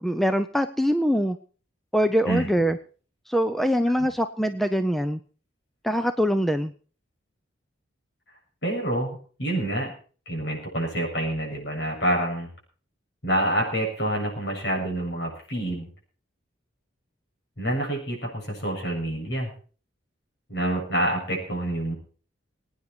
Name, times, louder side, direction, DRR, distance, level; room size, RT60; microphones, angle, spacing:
voice 1, 0.0-1.4 1.9-2.8 3.3-5.2 5.8-6.7, equal, ahead, 9 dB, 0.6 m, -23 dB
voice 2, 8.6-9.9 10.3-12.5 13.2-15.9 17.6-19.5 20.5-21.9, right 1 dB, 60° left, 0 dB, 7.3 m, -27 dB
22.5 x 9.6 x 4.5 m, 0.40 s
head